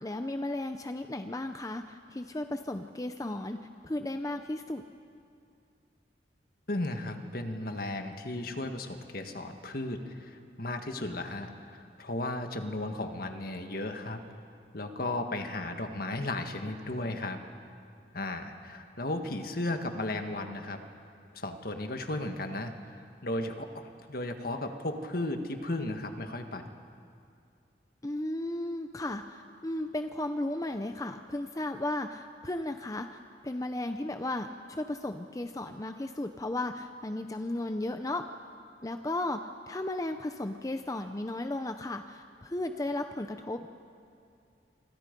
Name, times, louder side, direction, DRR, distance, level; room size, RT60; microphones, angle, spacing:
voice 1, 0.0-3.6 3.8-4.8 28.0-38.2 38.8-43.7, left 1 dB, 20° left, 7 dB, 0.6 m, -35 dB
voice 2, 6.7-14.2 14.7-17.4 18.1-20.8 21.3-23.0 23.2-26.7, left 2 dB, 55° left, 6 dB, 1.6 m, -35 dB
26.5 x 26.5 x 5.3 m, 2.4 s
head